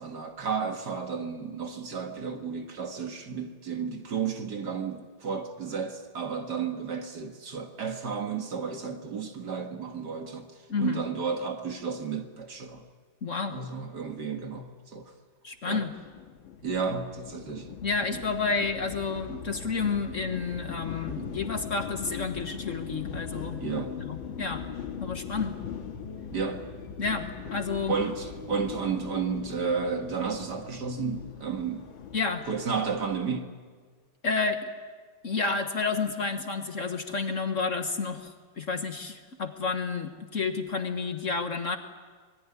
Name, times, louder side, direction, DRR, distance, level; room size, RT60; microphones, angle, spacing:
voice 1, 0.0-10.5 10.8-12.8 13.5-15.1 15.6-15.8 16.6-17.7 18.1-18.2 23.6-24.0 26.3-26.7 27.9-31.9 32.5-33.5, right 5 dB, 60° right, 5 dB, 2.2 m, -32 dB
voice 2, 10.7-11.0 13.2-13.6 15.4-15.9 17.8-23.6 24.0-24.6 25.0-25.6 27.0-27.9 32.1-32.5 34.2-34.7 35.2-41.8, left 4 dB, 45° left, 6 dB, 1.6 m, -30 dB
sound 1, 15.9-33.2, left 7 dB, 90° left, 2.3 m, -40 dB
26.0 x 20.5 x 9.7 m, 1.5 s
omnidirectional pair, 2.1 m